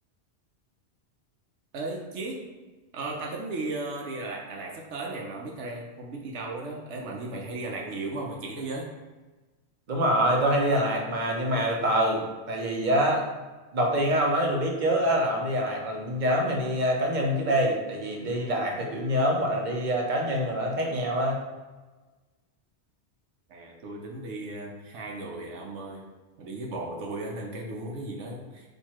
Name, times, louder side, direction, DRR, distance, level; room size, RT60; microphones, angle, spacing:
voice 1, 1.7-2.4 2.9-8.9 23.5-26.0 26.4-28.7, right 2 dB, 80° right, 0 dB, 1.0 m, -35 dB
voice 2, 9.9-13.3 13.7-21.4, equal, 45° right, 0 dB, 0.9 m, -25 dB
4.6 x 2.7 x 4.2 m, 1.2 s
omnidirectional pair, 1.2 m